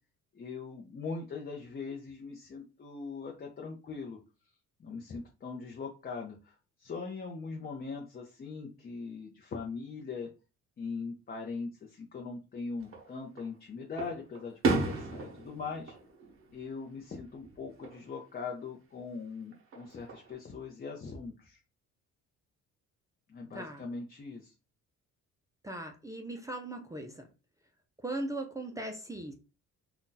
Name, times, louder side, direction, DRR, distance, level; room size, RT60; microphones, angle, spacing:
voice 1, 0.3-4.2 4.8-10.3 10.8-16.0 16.5-21.6 23.3-24.5, left 4 dB, 30° left, 0 dB, 0.6 m, -41 dB
Fireworks, 12.8-13.5 14.0-17.1 17.4-18.0 19.5-20.3, right 3 dB, 45° right, 1.0 m, -34 dB
voice 2, 23.5-23.8 25.6-27.3 28.0-29.3, right 1 dB, 10° right, 3 dB, 0.4 m, -38 dB
2.7 x 2.3 x 3.7 m, 0.31 s
cardioid pair, 120°, 31 cm